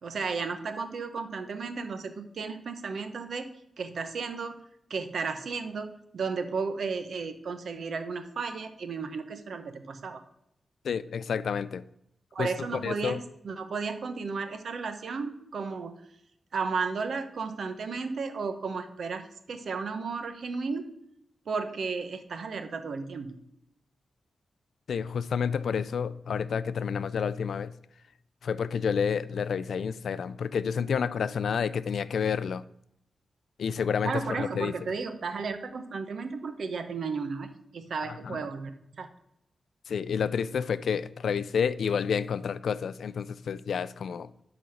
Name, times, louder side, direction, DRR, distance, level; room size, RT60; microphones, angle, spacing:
voice 1, 0.0-4.5 4.9-10.2 12.3-15.9 16.5-20.9 21.5-23.4 34.0-39.1, right 4 dB, 70° right, 8 dB, 0.9 m, -34 dB
voice 2, 10.8-11.8 12.4-13.2 24.9-27.7 28.4-32.6 33.6-34.7 38.1-38.5 39.9-44.3, left 6 dB, 80° left, 16 dB, 0.4 m, -29 dB
10.5 x 4.1 x 6.4 m, 0.79 s
wide cardioid pair, 130°, 0 cm